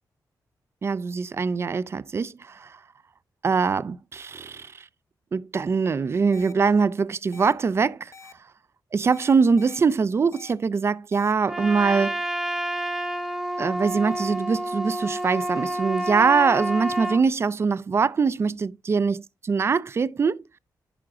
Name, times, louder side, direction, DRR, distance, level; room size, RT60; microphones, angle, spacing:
voice 1, 0.8-2.8 3.4-4.7 5.3-8.1 8.9-12.2 13.6-19.2 19.5-20.4, right 5 dB, 35° right, 0.3 m, -23 dB
sound 1, 6.3-6.5 7.3-7.5 8.1-8.3 9.1-9.8 10.3-10.5 11.1-11.3, left 4 dB, 40° left, 0.8 m, -46 dB
Trumpet, 11.5-17.2, right 1 dB, 5° right, 0.9 m, -29 dB
11.0 x 4.7 x 2.4 m
cardioid pair, 100°, 7 cm